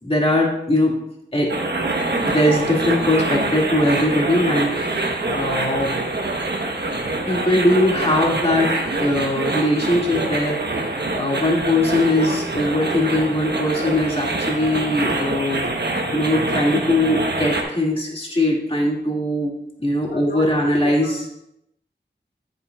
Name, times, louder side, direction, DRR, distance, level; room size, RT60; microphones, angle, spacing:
voice 1, 0.0-1.0 1.3-1.5 2.2-6.0 7.3-15.7 16.1-19.5 19.8-21.2, left 1 dB, 30° left, -2 dB, 2.1 m, -21 dB
sound 1, 1.5-17.6, right 2 dB, 65° right, 1.1 m, -25 dB
voice 2, 20.1-21.1, left 2 dB, 80° left, 0 dB, 1.0 m, -31 dB
9.8 x 8.1 x 2.4 m, 0.80 s
wide cardioid pair, 55°, 18 cm